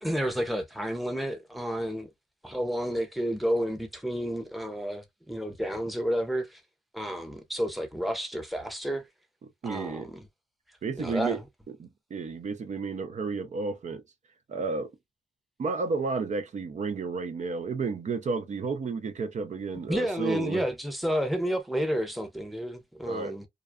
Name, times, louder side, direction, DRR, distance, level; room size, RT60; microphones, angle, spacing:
voice 1, 0.0-2.1 2.4-6.6 6.9-9.0 9.6-10.3 11.0-11.4 19.9-23.5, equal, ahead, 0.7 m, -31 dB
voice 2, 9.6-10.1 10.8-11.4 11.8-14.0 14.5-14.9 15.6-20.6 23.1-23.4, right 4 dB, 65° right, 0.5 m, -32 dB
2.5 x 2.3 x 2.2 m
cardioid pair, 65°, 13 cm